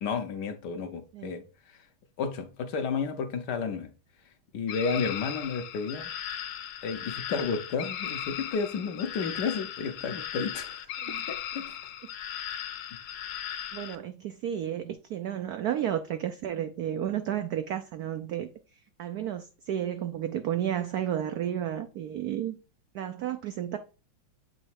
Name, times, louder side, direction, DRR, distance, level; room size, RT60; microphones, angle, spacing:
voice 1, 0.0-1.8 2.2-3.9 4.5-6.1 6.8-10.9 11.3-11.8, left 5 dB, 65° left, 1.2 m, -32 dB
sound 1, 4.7-14.0, left 10 dB, 90° left, 1.6 m, -37 dB
voice 2, 13.7-18.5 19.0-22.6 22.9-23.8, right 10 dB, 85° right, 0.8 m, -32 dB
8.0 x 3.2 x 4.6 m
omnidirectional pair, 2.2 m